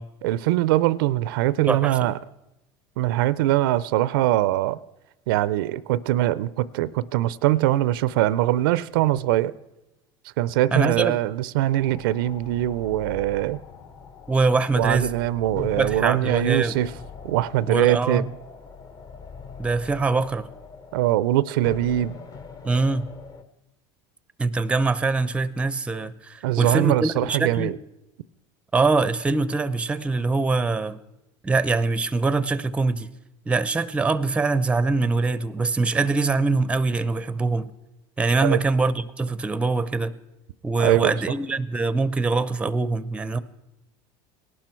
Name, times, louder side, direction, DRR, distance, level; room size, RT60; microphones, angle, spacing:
voice 1, 0.2-2.1 3.0-4.8 5.3-9.5 10.4-13.6 14.8-16.9 17.2-18.3 20.9-22.2 26.4-27.7 38.4-38.6 40.8-41.1, right 15 dB, 85° right, 19 dB, 0.5 m, -22 dB
voice 2, 1.7-2.1 10.7-11.2 14.3-15.1 15.8-16.8 17.6-18.3 19.6-20.5 22.6-23.1 24.4-27.8 28.7-31.0 31.4-33.1 33.5-37.7 38.2-40.1 40.6-43.4, right 3 dB, 10° right, 16 dB, 0.5 m, -23 dB
sound 1, 11.7-23.4, left 5 dB, 30° left, 0.9 m, -41 dB
18.5 x 12.0 x 4.5 m, 0.95 s
supercardioid pair, 120°, 11 cm